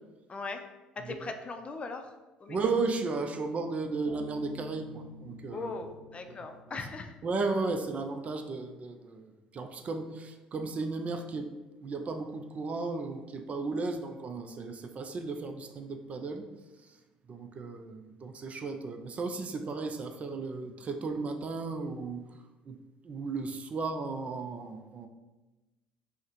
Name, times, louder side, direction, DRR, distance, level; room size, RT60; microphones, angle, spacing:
voice 1, 0.3-0.6 1.0-2.1 2.4-2.6 5.5-7.1, left 3 dB, 35° left, 6 dB, 0.5 m, -39 dB
voice 2, 2.5-5.7 7.2-11.5 11.8-16.5 17.3-22.2 22.7-22.8 23.0-25.1, right 3 dB, 40° right, 7 dB, 0.4 m, -34 dB
Bass guitar, 4.1-7.5, equal, 25° right, 1.3 m, -48 dB
5.4 x 2.1 x 3.1 m, 1.1 s
hypercardioid pair, 65°, 3 cm